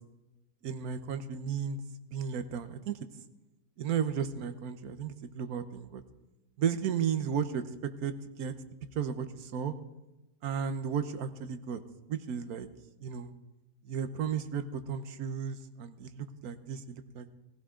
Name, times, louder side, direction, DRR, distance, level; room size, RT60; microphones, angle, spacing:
voice 1, 0.6-1.8 2.1-3.0 3.8-6.0 6.6-8.5 8.9-9.7 10.4-11.8 12.1-12.7 13.0-13.3 13.8-17.3, right 7 dB, 60° right, 10 dB, 1.3 m, -34 dB
19.0 x 15.5 x 3.8 m, 1.0 s
omnidirectional pair, 1.9 m